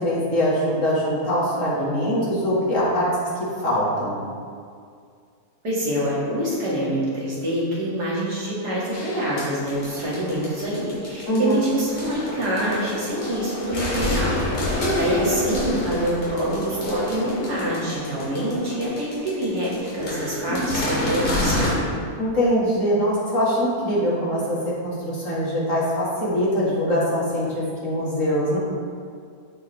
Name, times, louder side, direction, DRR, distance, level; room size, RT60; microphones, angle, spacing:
voice 1, 0.0-3.2 3.6-4.2 11.3-11.6 22.2-24.6 24.8-28.6, equal, 55° left, -8 dB, 2.4 m, -22 dB
voice 2, 5.6-21.9, right 1 dB, 80° right, -8 dB, 2.8 m, -26 dB
sound 1, 8.9-21.7, left 1 dB, 75° left, 2.4 m, -28 dB
13.0 x 4.7 x 3.4 m, 2.2 s
omnidirectional pair, 1.7 m